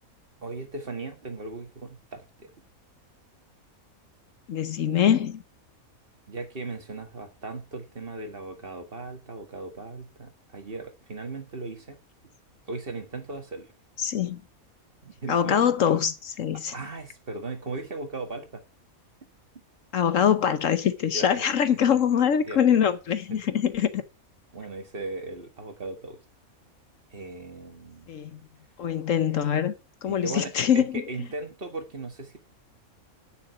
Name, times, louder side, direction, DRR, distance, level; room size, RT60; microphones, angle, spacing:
voice 1, 0.4-2.5 6.3-12.0 12.7-13.7 15.0-15.6 16.7-18.6 21.1-21.5 22.5-22.6 24.5-26.2 27.1-28.1 30.1-32.4, right 3 dB, 40° right, 1.9 m, -37 dB
voice 2, 4.5-5.4 14.0-14.4 15.3-16.7 19.9-24.0 28.1-28.4 28.8-29.7 30.0-31.0, left 8 dB, 65° left, 1.2 m, -23 dB
9.7 x 6.8 x 5.7 m
omnidirectional pair, 1.5 m